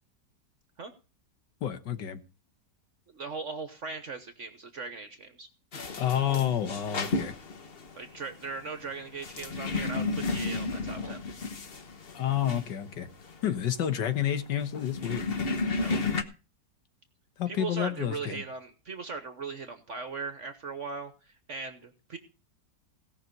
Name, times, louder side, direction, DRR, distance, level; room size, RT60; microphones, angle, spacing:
voice 1, 1.6-2.2 6.0-7.3 12.1-13.1 13.4-15.3 17.4-18.4, left 10 dB, 85° left, 10 dB, 1.8 m, -29 dB
voice 2, 3.1-5.5 8.0-11.2 15.8-16.0 17.5-22.2, right 4 dB, 50° right, 8 dB, 1.2 m, -39 dB
sound 1, 5.7-16.2, left 3 dB, 40° left, 1.1 m, -33 dB
17.0 x 5.9 x 6.6 m, 0.34 s
omnidirectional pair, 1.8 m